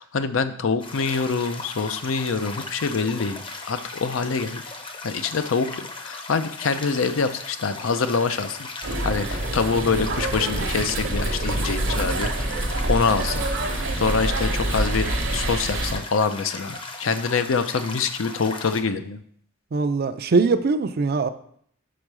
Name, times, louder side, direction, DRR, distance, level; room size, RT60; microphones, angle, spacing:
voice 1, 0.0-4.6 5.0-8.7 9.0-13.4 13.8-15.1 15.3-19.2, left 5 dB, 80° left, 10 dB, 0.5 m, -25 dB
sound 1, 0.8-18.8, left 3 dB, 25° left, 0.7 m, -37 dB
sound 2, 8.8-15.9, right 2 dB, 70° right, 1.0 m, -26 dB
voice 2, 19.7-21.3, right 4 dB, 50° right, 10 dB, 0.4 m, -21 dB
5.3 x 5.0 x 6.0 m, 0.64 s
head